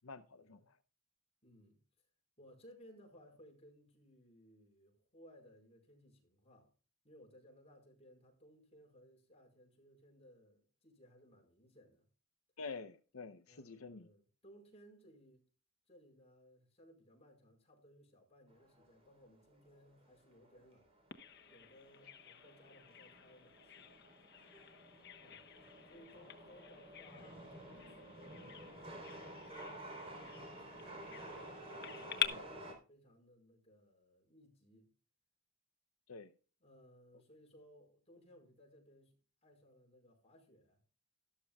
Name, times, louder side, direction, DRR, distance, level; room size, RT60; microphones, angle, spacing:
voice 1, 0.0-0.8 12.6-14.1 32.2-32.4 36.1-36.3, left 4 dB, 75° left, 0.7 m, -48 dB
voice 2, 1.4-2.0 2.4-6.7 7.0-12.0 13.5-15.4 15.9-20.9 21.5-23.9 25.2-25.5 25.8-30.1 30.5-34.9 36.6-39.2 39.4-40.8, equal, 30° left, 5.0 m, -63 dB
Chatter / Subway metro underground, 18.5-32.7, right 1 dB, 25° right, 3.8 m, -52 dB
Bird vocalization bird call bird song, 21.1-32.3, left 10 dB, 50° left, 1.1 m, -47 dB
13.0 x 13.0 x 2.4 m
head